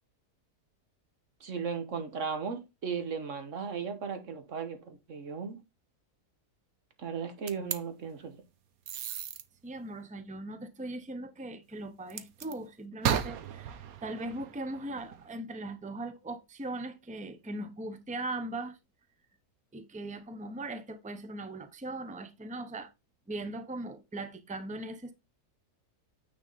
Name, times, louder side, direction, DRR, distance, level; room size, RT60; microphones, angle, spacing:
voice 1, 1.4-5.6 7.0-8.4, right 6 dB, 55° right, 1.5 m, -36 dB
sound 1, 7.5-7.8 8.9-9.4 12.1-12.5 13.0-15.3, right 9 dB, 70° right, 1.2 m, -34 dB
voice 2, 9.6-18.8 19.7-22.9 23.3-25.1, right 2 dB, 10° right, 0.4 m, -39 dB
9.3 x 4.0 x 4.0 m
omnidirectional pair, 1.7 m